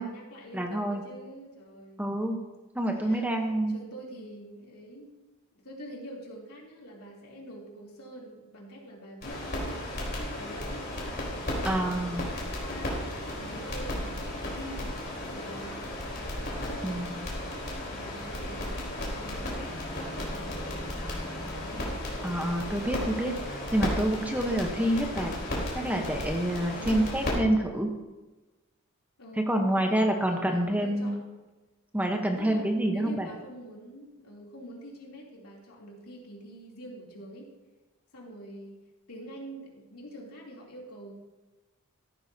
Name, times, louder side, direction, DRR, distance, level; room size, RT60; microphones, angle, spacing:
voice 1, 0.0-2.1 2.9-3.3 3.7-5.1 5.6-10.9 11.5-12.0 12.3-13.0 13.3-15.8 16.6-17.3 17.9-21.8 26.8-27.1 29.2-31.4 32.1-37.5 38.1-38.8 39.1-41.1, equal, 80° left, -3 dB, 3.0 m, -45 dB
voice 2, 0.5-1.0 2.0-2.4 2.7-3.7 11.6-12.2 16.8-17.2 22.2-25.3 25.7-27.9 29.5-31.2 31.9-33.3, right 1 dB, 5° right, 3 dB, 0.9 m, -27 dB
sound 1, 9.2-27.3, left 1 dB, 45° left, 3.6 m, -35 dB
sound 2, 19.7-21.9, equal, 45° right, 4.3 m, -45 dB
14.0 x 12.5 x 2.8 m, 1.1 s
head